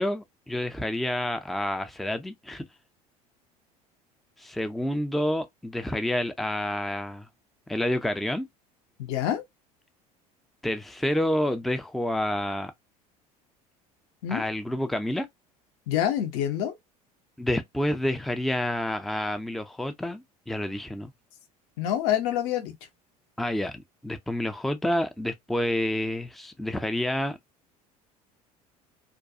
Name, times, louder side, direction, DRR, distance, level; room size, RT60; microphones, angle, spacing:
voice 1, 0.0-2.6 4.4-7.3 7.7-8.5 10.6-12.7 14.3-15.3 17.4-21.1 23.4-27.4, left 1 dB, ahead, 0.4 m, -29 dB
voice 2, 9.0-9.4 14.2-14.4 15.9-16.8 21.8-22.7, left 11 dB, 65° left, 0.7 m, -26 dB
2.4 x 2.2 x 2.6 m
hypercardioid pair, 70°, 19 cm